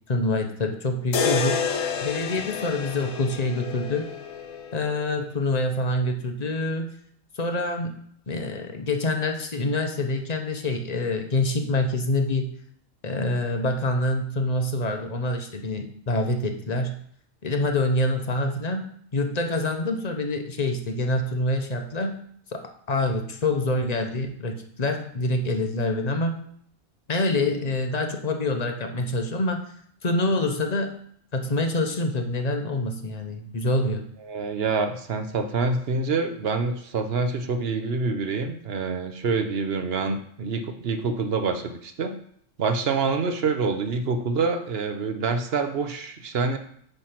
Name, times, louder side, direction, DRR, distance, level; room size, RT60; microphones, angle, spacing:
voice 1, 0.1-1.6 2.0-4.1 4.7-6.9 7.4-12.5 13.0-16.9 17.4-22.2 22.5-22.6 22.9-26.4 27.1-29.7 30.0-30.9 31.3-34.0, left 2 dB, 35° left, 4 dB, 0.9 m, -26 dB
sound 1, 1.1-5.2, left 6 dB, 85° left, 1.2 m, -29 dB
voice 2, 34.2-42.1 42.6-46.6, right 4 dB, 55° right, 6 dB, 1.0 m, -26 dB
8.7 x 3.4 x 5.9 m, 0.64 s
omnidirectional pair, 1.3 m